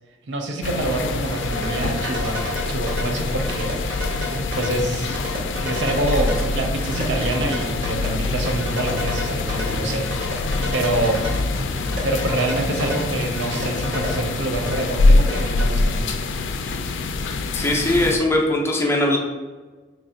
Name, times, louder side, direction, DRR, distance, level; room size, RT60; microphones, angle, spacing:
voice 1, 0.3-5.3 5.6-10.5 10.7-11.3 12.0-16.2, right 2 dB, 80° right, 3 dB, 0.5 m, -26 dB
sound 1, 0.6-18.2, left 3 dB, 90° left, 0.3 m, -24 dB
sound 2, 0.8-15.7, left 1 dB, 50° right, 1.0 m, -31 dB
voice 2, 17.5-19.2, left 1 dB, 15° left, 0 dB, 0.4 m, -20 dB
3.2 x 2.4 x 3.8 m, 1.3 s
head